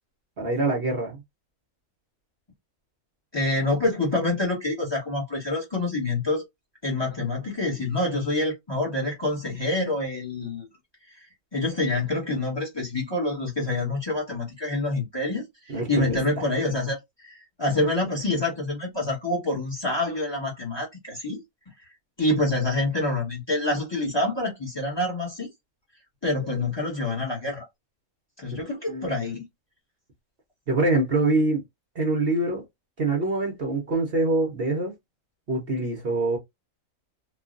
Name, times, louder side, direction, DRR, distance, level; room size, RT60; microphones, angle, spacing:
voice 1, 0.4-1.2 15.7-16.2 28.9-29.1 30.7-31.6 31.9-32.6 33.0-34.9 35.5-36.4, right 2 dB, 50° right, 1.0 m, -24 dB
voice 2, 3.3-6.4 6.8-10.7 11.5-17.0 17.2-21.4 22.2-25.5 26.2-27.6 28.4-29.4, left 2 dB, 20° left, 1.2 m, -27 dB
3.1 x 2.3 x 2.5 m
omnidirectional pair, 1.5 m